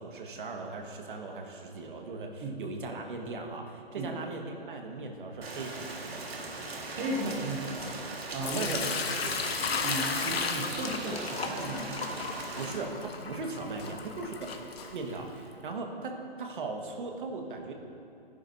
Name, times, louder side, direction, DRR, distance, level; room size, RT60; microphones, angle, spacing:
voice 1, 0.0-6.2 7.4-7.5 8.4-9.4 12.6-14.5 14.9-17.7, right 3 dB, 55° right, 3 dB, 1.6 m, -38 dB
Rain, 5.4-12.7, right 3 dB, 80° right, 1.9 m, -40 dB
voice 2, 6.9-7.7 8.3-8.7 9.8-12.0, right 2 dB, 10° right, -3 dB, 0.4 m, -35 dB
sound 1, 7.3-7.4 7.8-8.5 8.8-8.9 9.3-9.4 9.7-10.5 10.8-10.9 11.3-11.4 11.7-12.5 12.7-12.8 13.3-13.4 13.7-14.5 14.8-14.9, left 5 dB, 40° left, 1.6 m, -50 dB
Sink (filling or washing) / Liquid, 8.4-15.4, left 5 dB, 75° left, 1.2 m, -34 dB
17.5 x 10.5 x 2.7 m, 2.6 s
hypercardioid pair, 150°, 30 cm